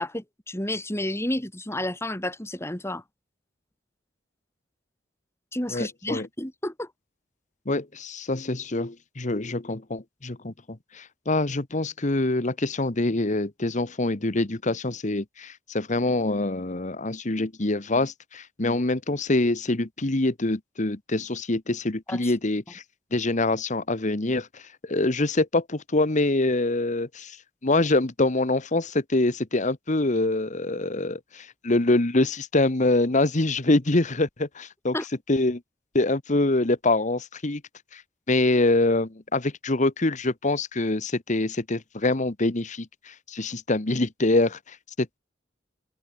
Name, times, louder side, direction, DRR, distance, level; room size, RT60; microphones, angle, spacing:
voice 1, 0.0-3.0 5.5-6.9 22.1-22.3 34.9-35.1, left 1 dB, 15° left, 4.1 m, -31 dB
voice 2, 5.7-6.3 7.6-22.8 23.1-27.4 27.6-34.9 35.3-35.6 35.9-37.6 37.9-38.0 38.3-45.2, left 2 dB, 40° left, 1.3 m, -25 dB
open air
head